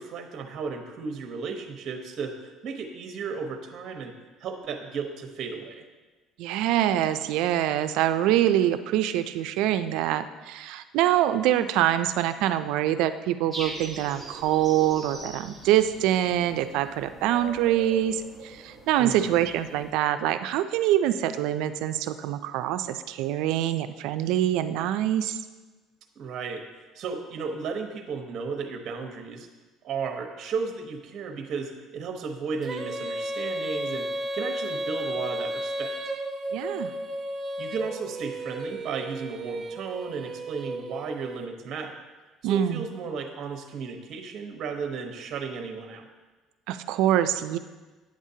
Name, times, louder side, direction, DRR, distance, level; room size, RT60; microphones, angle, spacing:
voice 1, 0.0-4.1 4.4-5.8 19.0-19.4 26.2-26.6 26.9-29.5 29.8-34.1 34.3-35.9 37.6-42.0 42.4-46.1, right 5 dB, 50° right, 4 dB, 0.9 m, -34 dB
voice 2, 6.4-25.4 36.5-36.9 42.4-42.8 46.7-47.6, right 12 dB, 75° right, 10 dB, 0.4 m, -25 dB
sound 1, 13.5-19.9, right 1 dB, 5° left, 1.2 m, -42 dB
Female singing, 32.6-41.4, right 1 dB, 25° right, 0.6 m, -33 dB
9.0 x 7.3 x 2.8 m, 1.3 s
cardioid pair, 130°, 0 cm